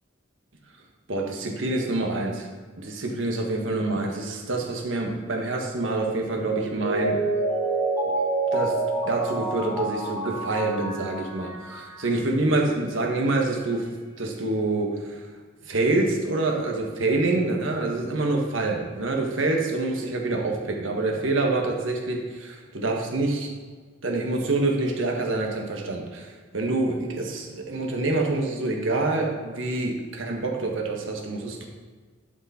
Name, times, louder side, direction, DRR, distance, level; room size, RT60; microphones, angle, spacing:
voice 1, 1.1-2.5 2.8-7.2 8.5-8.7 9.0-13.9 14.2-15.2 15.6-23.5 24.0-31.7, right 2 dB, 80° right, 1 dB, 1.4 m, -26 dB
Mallet percussion, 6.7-12.2 12.5-12.6, right 2 dB, 15° right, 1.9 m, -28 dB
11.5 x 5.2 x 4.2 m, 1.5 s
head